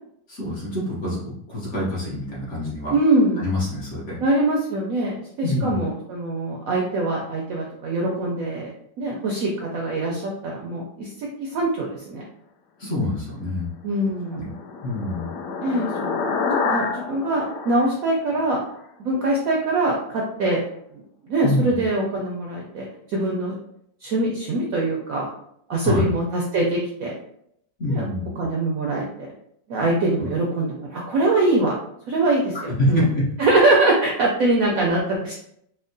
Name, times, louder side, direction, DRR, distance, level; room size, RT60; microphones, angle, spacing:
voice 1, 0.3-3.0 3.3-4.2 5.4-5.8 12.8-13.7 14.3-14.5 14.8-15.3 21.4-21.6 25.8-26.1 27.8-28.4 30.2-30.3 32.7-33.2, left 1 dB, 50° left, -6 dB, 1.0 m, -26 dB
voice 2, 2.9-3.4 4.2-8.7 9.0-12.2 13.8-14.6 15.6-16.2 16.6-18.6 19.0-20.6 20.9-23.6 24.0-25.3 25.7-27.1 27.9-28.0 28.4-29.3 29.7-31.8 32.1-33.0 33.4-35.4, right 2 dB, 75° right, -1 dB, 0.8 m, -23 dB
sound 1, 14.0-18.8, left 4 dB, 75° left, 1.1 m, -28 dB
4.4 x 2.1 x 2.6 m, 0.72 s
omnidirectional pair, 2.0 m